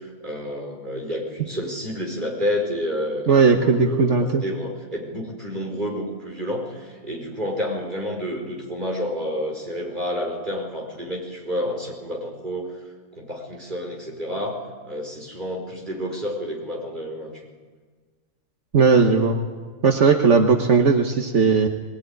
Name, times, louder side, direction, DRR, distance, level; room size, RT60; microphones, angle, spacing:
voice 1, 0.0-4.1 4.4-12.7 13.1-17.3, equal, 40° right, 0 dB, 5.1 m, -29 dB
voice 2, 3.3-4.4 18.7-19.4 19.8-21.7, right 5 dB, 65° right, 4 dB, 1.6 m, -17 dB
21.5 x 19.5 x 9.5 m, 1.5 s
omnidirectional pair, 1.3 m